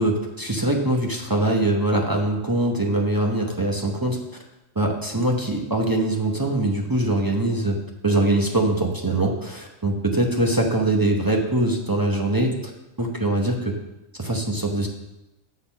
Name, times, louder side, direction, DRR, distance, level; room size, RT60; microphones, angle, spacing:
voice 1, 0.0-4.2 4.8-7.8 8.0-12.6 13.0-13.7 14.2-14.9, right 1 dB, 20° right, 1 dB, 0.7 m, -22 dB
8.8 x 4.0 x 7.0 m, 0.98 s
omnidirectional pair, 1.4 m